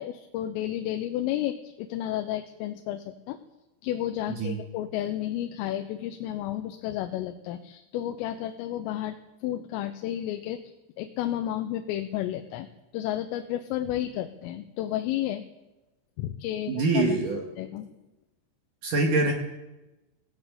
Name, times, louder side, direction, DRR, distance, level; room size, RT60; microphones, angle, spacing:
voice 1, 0.0-3.4 3.8-9.2 9.4-10.6 11.0-12.7 12.9-15.4 16.2-17.0 17.6-17.9, left 12 dB, 90° left, 7 dB, 3.5 m, -32 dB
voice 2, 4.3-4.6 16.7-17.4 18.8-19.3, right 2 dB, 50° right, 2 dB, 3.0 m, -24 dB
19.5 x 16.0 x 8.3 m, 1.0 s
omnidirectional pair, 5.7 m